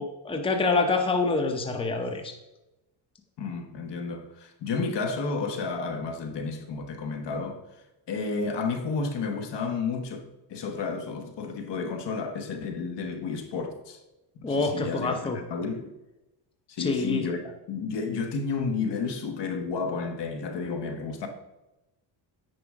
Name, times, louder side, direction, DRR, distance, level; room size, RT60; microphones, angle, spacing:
voice 1, 0.0-2.3 14.4-15.4 16.8-17.2, left 3 dB, 10° left, 0.8 m, -26 dB
voice 2, 3.4-7.6 8.1-14.0 14.4-15.9 16.7-21.3, left 4 dB, 60° left, 1.3 m, -31 dB
9.7 x 5.0 x 3.6 m
cardioid pair, 95°, 48 cm